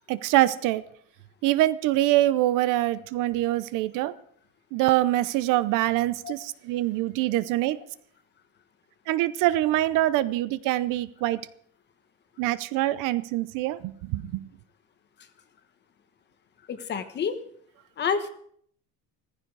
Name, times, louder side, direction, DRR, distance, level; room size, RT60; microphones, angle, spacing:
voice 1, 0.1-0.8 1.4-4.1 4.7-7.8 9.1-11.4 12.4-14.5, right 15 dB, 55° right, 0.7 m, -24 dB
voice 2, 16.7-17.4 18.0-18.3, left 6 dB, 30° left, 1.1 m, -28 dB
15.5 x 15.0 x 4.7 m
cardioid pair, 165°, 38 cm